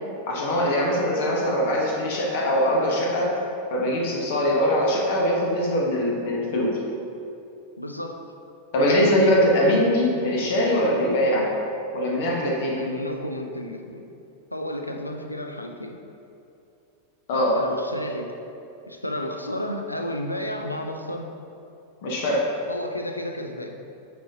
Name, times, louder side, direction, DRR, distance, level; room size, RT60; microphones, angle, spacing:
voice 1, 0.3-3.3 3.7-6.8 8.7-11.5 11.9-12.8 17.3-17.6 22.0-22.5, equal, 50° left, -2 dB, 1.2 m, -22 dB
voice 2, 7.8-8.2 12.7-14.1 14.5-16.0 17.3-18.3 18.9-21.3 22.7-23.8, left 1 dB, 85° left, 3 dB, 0.5 m, -32 dB
9.0 x 4.2 x 2.9 m, 2.7 s
figure-of-eight pair, 90°, 0 cm